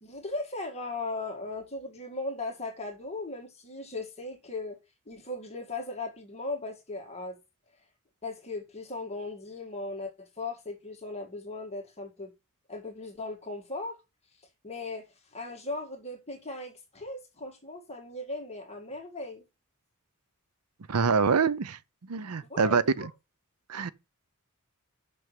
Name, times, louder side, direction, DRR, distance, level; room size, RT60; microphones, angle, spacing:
voice 1, 0.0-4.8 5.1-7.4 8.2-12.3 12.7-14.0 14.6-15.1 15.3-19.4 22.5-23.1, left 2 dB, 30° left, 1.9 m, -38 dB
voice 2, 20.9-21.8 22.1-23.1 23.7-23.9, right 5 dB, 85° right, 0.7 m, -25 dB
6.2 x 6.2 x 7.4 m
head